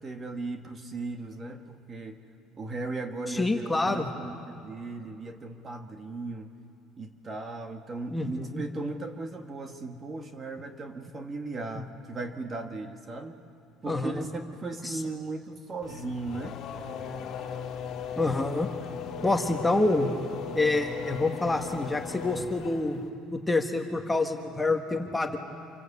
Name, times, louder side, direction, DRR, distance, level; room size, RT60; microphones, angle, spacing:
voice 1, 0.0-2.2 2.6-6.5 7.0-13.4 13.8-16.6, right 3 dB, 25° right, 5 dB, 1.6 m, -37 dB
voice 2, 3.3-4.1 8.1-8.6 13.9-14.2 14.8-15.0 18.2-18.7 19.2-20.1 20.5-23.0 23.3-25.4, left 2 dB, 10° left, 3 dB, 1.6 m, -27 dB
Race car auto racing / Accelerating revving vroom, 15.8-23.1, left 6 dB, 55° left, 2.2 m, -38 dB
27.5 x 25.0 x 8.4 m, 2.7 s
cardioid pair, 150°, 0 cm